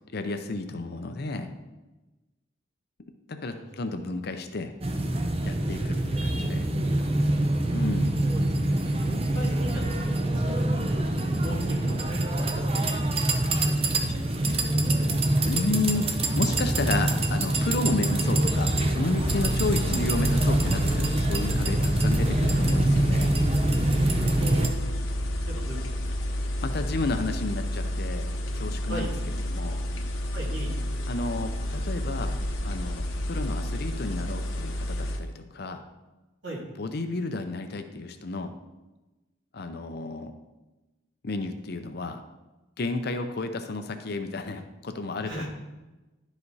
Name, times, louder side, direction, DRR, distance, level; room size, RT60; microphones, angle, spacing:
voice 1, 0.1-1.5 3.3-4.7 5.4-6.7 7.7-8.1 15.4-23.3 26.6-28.3 28.5-29.1 29.4-29.8 31.1-32.4 32.6-35.8 36.8-38.5 39.5-40.3 41.2-42.2 42.8-45.4, left 3 dB, 55° left, 7 dB, 0.6 m, -32 dB
voice 2, 3.4-3.8 8.3-10.9 11.4-12.9 13.6-14.2 24.0-24.7 25.5-26.4 28.9-29.1 30.3-30.8 36.4-36.6 45.2-45.5, right 1 dB, 70° right, -6 dB, 3.0 m, -39 dB
sound 1, 4.8-24.7, right 1 dB, 30° right, 0.7 m, -25 dB
sound 2, 19.2-35.2, left 1 dB, 85° left, 0.9 m, -30 dB
11.0 x 5.0 x 4.1 m, 1.1 s
head